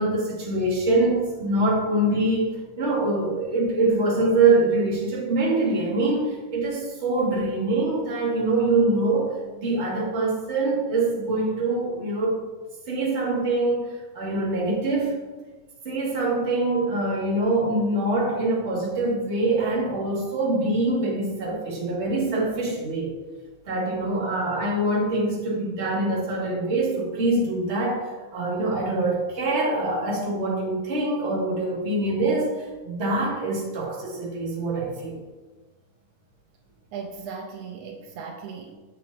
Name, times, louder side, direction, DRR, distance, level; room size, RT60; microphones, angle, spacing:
voice 1, 0.0-12.4 12.9-15.2 15.8-23.1 23.6-35.2, right 2 dB, 25° right, -6 dB, 1.8 m, -24 dB
voice 2, 36.9-38.8, right 5 dB, 80° right, 1 dB, 2.1 m, -37 dB
8.0 x 7.5 x 2.7 m, 1.3 s
omnidirectional pair, 3.6 m